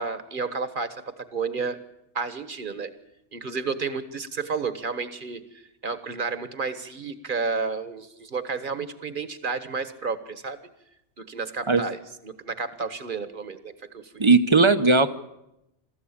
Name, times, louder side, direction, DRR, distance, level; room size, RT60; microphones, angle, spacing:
voice 1, 0.0-1.8 2.1-2.9 3.3-10.6 11.2-14.2, right 4 dB, 45° right, 11 dB, 1.5 m, -31 dB
voice 2, 14.2-15.1, right 3 dB, 30° right, 11 dB, 0.8 m, -17 dB
22.5 x 14.0 x 8.7 m, 0.87 s
omnidirectional pair, 1.2 m